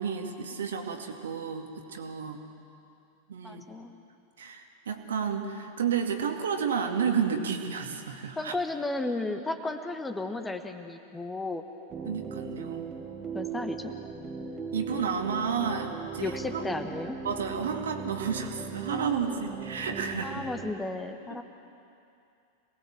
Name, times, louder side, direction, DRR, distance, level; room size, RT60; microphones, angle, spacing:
voice 1, 0.0-2.4 3.3-3.6 4.4-8.5 12.0-13.0 14.7-16.7 17.2-20.4 21.3-21.4, right 6 dB, 65° right, 4 dB, 2.1 m, -31 dB
voice 2, 3.4-3.9 8.4-11.6 13.3-13.9 16.2-17.2 20.2-21.4, left 2 dB, 10° left, 6 dB, 1.4 m, -34 dB
sound 1, 11.9-20.7, right 5 dB, 25° right, 1.6 m, -38 dB
27.0 x 19.5 x 7.6 m, 2.6 s
figure-of-eight pair, 90°, 0 cm